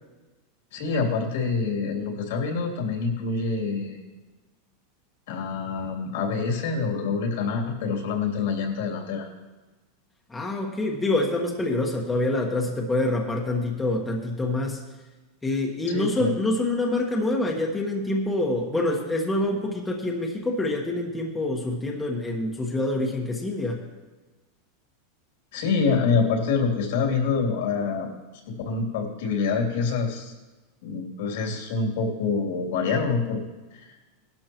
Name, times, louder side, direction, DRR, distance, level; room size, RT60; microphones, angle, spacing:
voice 1, 0.7-4.0 5.3-9.3 15.9-16.3 25.5-28.1 28.5-30.3 30.8-33.4 33.7-33.9, left 4 dB, 75° left, 0 dB, 3.0 m, -26 dB
voice 2, 10.3-14.8 15.4-23.8, left 2 dB, 10° left, -1 dB, 1.3 m, -26 dB
18.0 x 12.0 x 3.0 m, 1.2 s
supercardioid pair, 150°, 0 cm